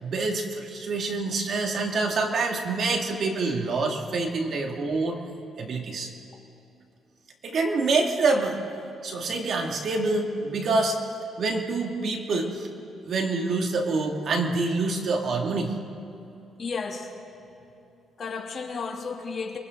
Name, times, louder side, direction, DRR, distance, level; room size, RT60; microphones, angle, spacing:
voice 1, 0.0-5.2 5.6-6.1 7.4-8.6 9.0-11.0 11.4-12.7 13.0-15.8, right 3 dB, 60° right, 2 dB, 2.4 m, -26 dB
voice 2, 16.6-17.1 18.2-19.6, left 5 dB, 45° left, 0 dB, 2.8 m, -33 dB
29.0 x 23.0 x 3.9 m, 2.9 s
cardioid pair, 90°, 0 cm